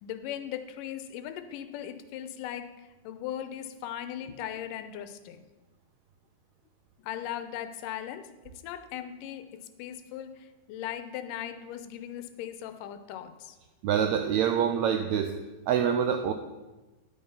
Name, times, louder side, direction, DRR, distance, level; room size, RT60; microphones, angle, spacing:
voice 1, 0.0-5.5 7.0-13.6, left 10 dB, 80° left, 10 dB, 2.3 m, -38 dB
voice 2, 13.8-15.4 15.7-16.3, right 8 dB, 90° right, 6 dB, 1.6 m, -25 dB
10.5 x 6.5 x 5.5 m, 1.1 s
omnidirectional pair, 3.8 m